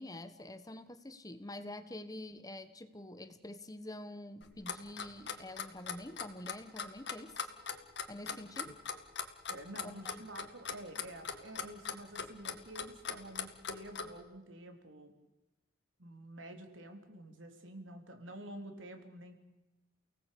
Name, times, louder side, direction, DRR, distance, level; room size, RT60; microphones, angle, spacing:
voice 1, 0.0-7.4 8.1-8.8 9.8-10.1, left 1 dB, 20° left, 11 dB, 1.4 m, -47 dB
Clock, 4.4-14.1, left 6 dB, 65° left, 2.1 m, -40 dB
voice 2, 9.5-15.1 16.0-19.4, right 1 dB, 90° right, 5 dB, 3.8 m, -49 dB
29.5 x 18.5 x 8.6 m, 1.0 s
head